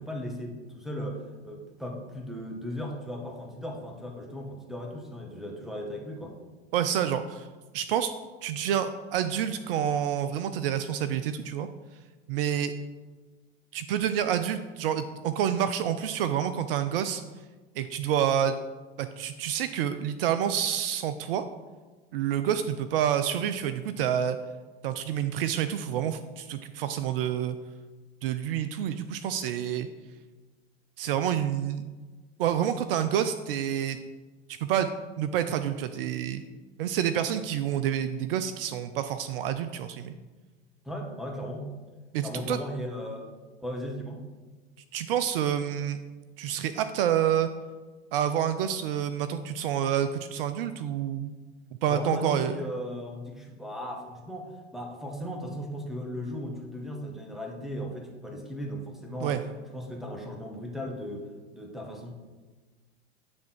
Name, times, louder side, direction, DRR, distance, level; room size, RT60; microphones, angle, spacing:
voice 1, 0.0-6.3 40.8-41.7 42.2-43.3 43.6-44.3 51.9-59.4 59.7-62.1, equal, ahead, 1 dB, 1.3 m, -37 dB
voice 2, 6.7-7.5 7.7-8.1 8.4-11.7 12.3-12.7 13.7-17.2 17.8-18.6 19.0-21.4 22.1-24.4 24.8-27.6 28.2-29.9 31.0-31.8 32.4-34.0 34.5-34.9 35.2-36.4 36.8-40.2 42.1-42.6 44.9-46.0 46.4-47.5 48.1-51.3 51.8-52.6 59.2-59.4, right 9 dB, 60° right, 10 dB, 0.5 m, -28 dB
9.5 x 3.5 x 4.4 m, 1.3 s
hypercardioid pair, 85°, 32 cm